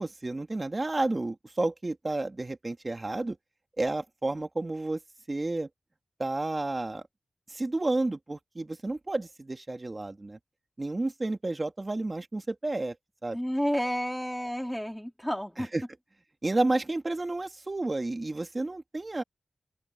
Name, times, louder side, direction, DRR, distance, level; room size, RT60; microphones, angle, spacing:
voice 1, 0.0-3.4 3.8-5.0 5.3-5.7 6.2-7.0 7.5-10.4 10.8-12.9 13.2-13.4 15.6-15.8 16.4-19.2, right 2 dB, 30° right, 2.3 m, -31 dB
voice 2, 13.3-15.7, equal, 5° left, 4.3 m, -30 dB
open air
wide cardioid pair, 85°, 0 cm